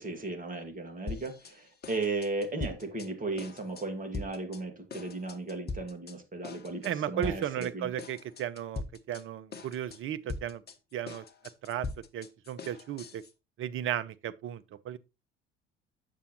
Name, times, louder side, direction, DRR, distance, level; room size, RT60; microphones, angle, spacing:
voice 1, 0.0-7.9, right 3 dB, 25° right, 2.2 m, -36 dB
sound 1, 1.1-1.5 1.8-3.1 3.4-3.9 4.1-4.6 4.9-6.1 6.4-6.9 7.2-7.7 8.0-9.2 9.5-10.0 10.3-13.3, left 3 dB, 30° left, 1.2 m, -41 dB
voice 2, 6.8-8.8 9.1-10.6 10.9-11.2 11.6-11.9 12.1-13.2 13.6-15.0, right 10 dB, 40° right, 0.7 m, -35 dB
8.6 x 6.8 x 3.0 m
figure-of-eight pair, 60°, 31 cm